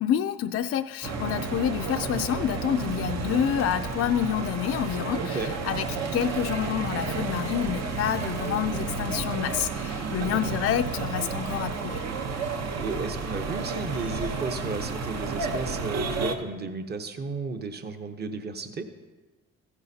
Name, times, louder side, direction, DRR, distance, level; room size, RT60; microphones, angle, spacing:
voice 1, 0.0-12.0, left 9 dB, 50° left, 7 dB, 0.4 m, -28 dB
sound 1, 1.0-16.4, right 4 dB, 60° right, 0.9 m, -31 dB
voice 2, 5.2-5.5 10.2-10.4 12.8-18.8, right 4 dB, 35° right, 7 dB, 0.9 m, -33 dB
15.0 x 9.6 x 2.8 m, 1.2 s
cardioid pair, 90°, 30 cm